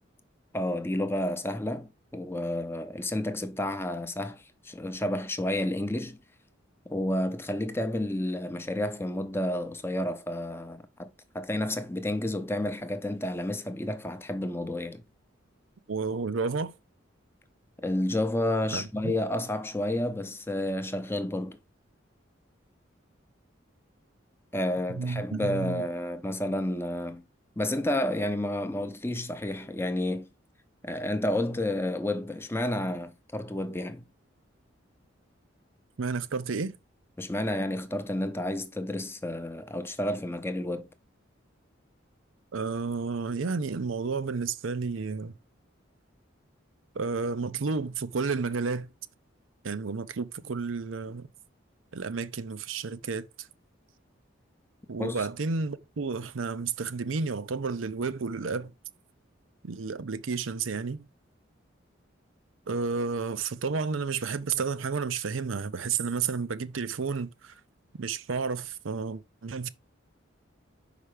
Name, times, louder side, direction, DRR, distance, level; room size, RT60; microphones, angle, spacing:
voice 1, 0.5-6.2 6.9-11.1 11.3-15.0 17.8-21.6 24.5-27.2 27.6-30.3 30.8-34.1 37.2-40.9 55.0-55.3, left 1 dB, 10° left, 0.6 m, -30 dB
voice 2, 15.9-16.7 18.7-19.1 24.9-25.8 36.0-36.8 42.5-45.3 46.9-48.9 49.6-51.3 51.9-53.5 54.9-58.7 59.6-61.1 62.7-67.5 68.0-69.7, right 4 dB, 80° right, 0.6 m, -31 dB
5.6 x 5.0 x 4.9 m
head